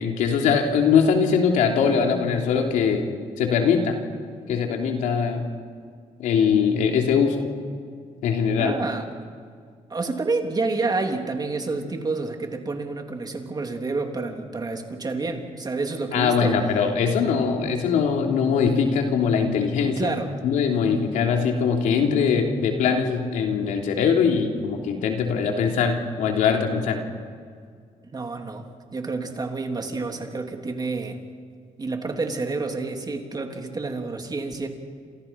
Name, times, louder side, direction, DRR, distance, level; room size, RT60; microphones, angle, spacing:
voice 1, 0.0-3.0 3.4-4.0 4.5-5.5 6.2-7.4 8.2-8.8 16.1-20.1 20.4-27.0, left 6 dB, 85° left, 2 dB, 3.2 m, -22 dB
voice 2, 8.6-9.1 9.9-16.5 20.0-20.3 28.1-28.6 28.9-31.2 31.8-34.7, right 3 dB, 30° right, 3 dB, 3.3 m, -29 dB
28.5 x 27.5 x 5.8 m, 2.1 s
cardioid pair, 90°, 13 cm